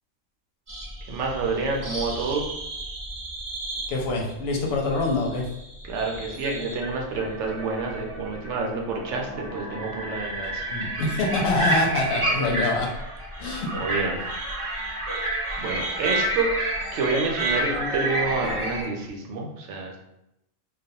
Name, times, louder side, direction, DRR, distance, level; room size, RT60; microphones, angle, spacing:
sound 1, 0.7-18.8, right 1 dB, 55° right, 0.3 m, -30 dB
voice 1, 1.1-2.4 5.8-10.7 13.7-14.4 15.6-16.5 16.9-20.0, right 4 dB, 75° right, 0 dB, 0.9 m, -28 dB
voice 2, 3.9-5.4 10.7-12.9 13.4-13.7, left 2 dB, 65° left, 0 dB, 0.7 m, -25 dB
2.3 x 2.1 x 2.7 m, 0.85 s
omnidirectional pair, 1.3 m